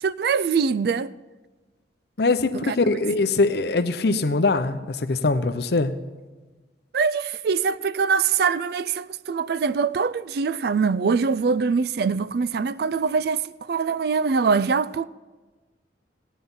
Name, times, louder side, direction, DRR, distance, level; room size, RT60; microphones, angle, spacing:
voice 1, 0.0-1.1 2.6-2.7 6.9-15.1, right 5 dB, 55° right, 0.3 m, -23 dB
voice 2, 2.2-5.9, left 3 dB, 60° left, 0.7 m, -22 dB
16.5 x 9.2 x 5.6 m
head